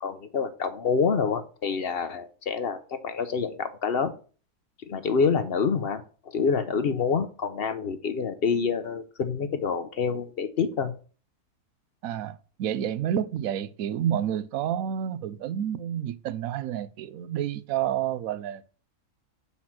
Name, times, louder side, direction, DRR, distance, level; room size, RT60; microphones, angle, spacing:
voice 1, 0.0-4.1 4.9-10.9, left 5 dB, 50° left, 0.8 m, -27 dB
voice 2, 12.0-18.7, right 10 dB, 70° right, 1.0 m, -29 dB
7.5 x 4.3 x 5.8 m
omnidirectional pair, 1.6 m